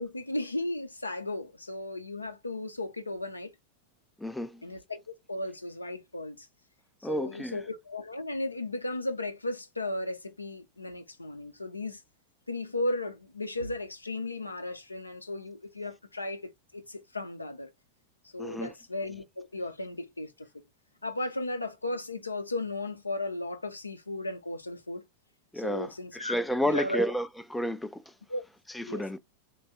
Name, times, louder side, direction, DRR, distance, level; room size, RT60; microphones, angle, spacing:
voice 1, 0.0-3.5 4.6-6.5 7.0-12.0 12.5-17.7 18.3-20.5 21.0-25.0 25.5-26.4 26.6-27.1 28.3-28.4 28.9-29.2, left 2 dB, 80° left, 0.5 m, -35 dB
voice 2, 4.2-4.6 7.0-7.6 18.4-18.7 25.5-28.0 28.7-29.2, equal, 5° left, 0.3 m, -31 dB
3.3 x 2.2 x 3.5 m
figure-of-eight pair, 90°, 0 cm